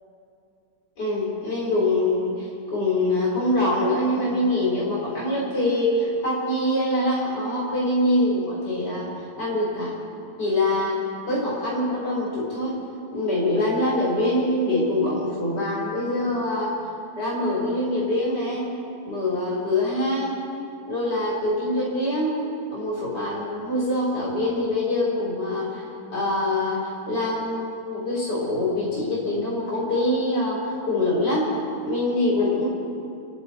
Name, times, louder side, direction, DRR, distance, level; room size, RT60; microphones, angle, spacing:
voice 1, 1.0-9.1 9.4-9.9 10.4-11.0 11.3-12.8 13.1-16.7 17.2-18.6 19.1-20.4 20.9-22.4 22.7-25.8 26.1-31.5 31.8-32.7, left 1 dB, 85° left, -6 dB, 4.7 m, -24 dB
29.0 x 11.0 x 4.2 m, 2.5 s
omnidirectional pair, 1.8 m